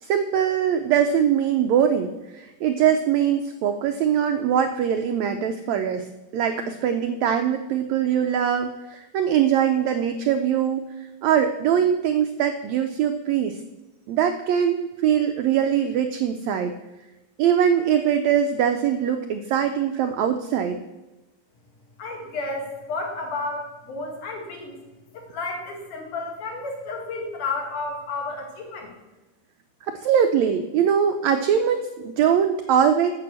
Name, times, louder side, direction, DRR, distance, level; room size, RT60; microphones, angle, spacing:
voice 1, 0.0-6.1 6.3-10.9 11.2-13.6 14.1-16.7 17.4-20.8 29.9-33.1, right 8 dB, 85° right, 7 dB, 1.6 m, -22 dB
voice 2, 22.0-24.8 25.1-28.9, left 3 dB, 70° left, 0 dB, 3.5 m, -32 dB
8.8 x 6.9 x 7.7 m, 1.0 s
omnidirectional pair, 3.8 m